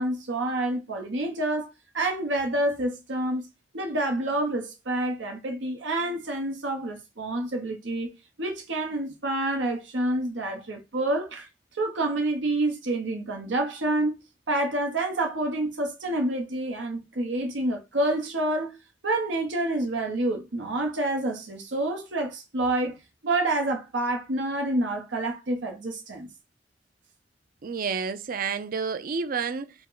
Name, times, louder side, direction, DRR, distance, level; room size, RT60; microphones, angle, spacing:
voice 1, 0.0-3.5 3.7-8.1 8.4-11.5 11.7-14.2 14.5-18.8 19.0-23.0 23.2-26.3, right 1 dB, 90° right, 1.0 m, -28 dB
voice 2, 27.6-29.7, right 5 dB, 50° right, 0.5 m, -30 dB
5.1 x 2.1 x 3.8 m
head